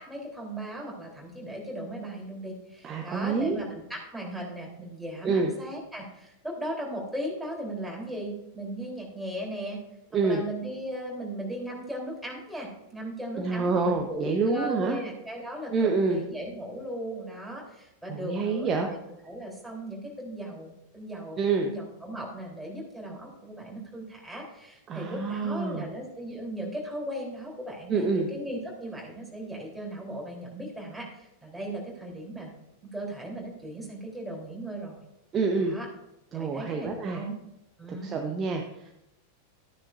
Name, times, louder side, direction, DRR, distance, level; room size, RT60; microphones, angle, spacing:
voice 1, 0.0-9.8 10.1-32.5 32.8-35.0 35.6-35.9 36.3-37.3 37.8-38.1, right 1 dB, 5° right, -3 dB, 3.8 m, -37 dB
voice 2, 2.8-3.6 5.2-5.5 10.1-10.4 13.4-15.0 15.7-16.2 18.1-18.9 21.4-21.7 24.9-25.9 27.9-28.3 35.3-35.8 36.3-37.2 37.9-38.9, right 4 dB, 25° right, 3 dB, 1.0 m, -27 dB
14.0 x 9.8 x 2.6 m, 0.85 s
figure-of-eight pair, 90°, 0 cm